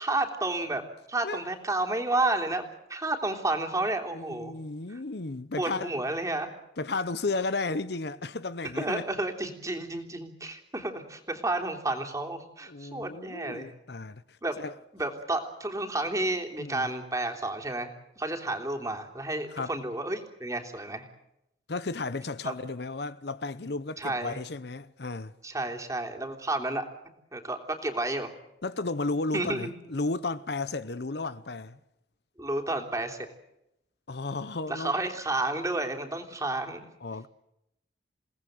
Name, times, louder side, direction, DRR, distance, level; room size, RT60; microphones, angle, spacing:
voice 1, 0.0-2.6 2.9-4.5 4.9-5.0 5.6-6.5 8.7-13.7 14.4-14.6 14.9-17.9 18.2-21.1 22.4-22.5 24.0-24.4 25.4-26.8 27.3-28.3 29.3-29.7 32.4-33.3 34.7-36.8, right 2 dB, 20° right, 3.4 m, -31 dB
voice 2, 4.1-5.9 6.8-9.1 12.7-14.7 16.6-16.9 19.5-19.7 21.7-25.3 28.6-31.8 34.1-34.9 37.0-37.3, left 3 dB, 60° left, 0.8 m, -33 dB
29.0 x 18.5 x 7.9 m
head